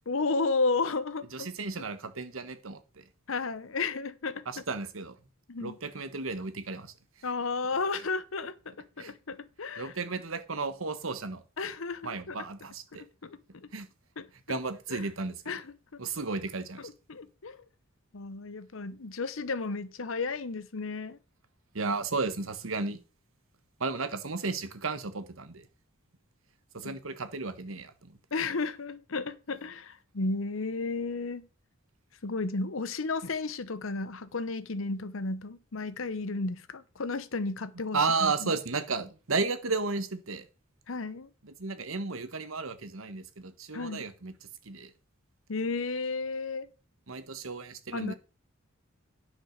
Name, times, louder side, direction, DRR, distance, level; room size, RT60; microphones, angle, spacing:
voice 1, 0.1-1.5 3.3-4.4 5.5-5.7 7.2-9.9 11.6-12.5 12.9-13.7 14.2-14.6 14.9-15.0 15.5-15.7 16.8-17.6 18.1-21.2 26.8-27.0 28.3-31.5 32.2-38.5 40.9-41.3 43.7-44.1 45.5-46.7 47.9-48.1, left 3 dB, 65° left, 0.8 m, -33 dB
voice 2, 1.3-3.0 4.5-5.2 5.6-6.9 9.0-9.1 9.8-11.4 12.0-13.0 13.7-13.9 14.5-15.6 16.0-16.9 21.7-23.0 23.8-25.7 26.7-28.2 37.9-40.4 41.4-44.3 44.6-44.9 47.1-48.2, right 4 dB, 70° right, 1.3 m, -33 dB
10.0 x 5.3 x 6.5 m
head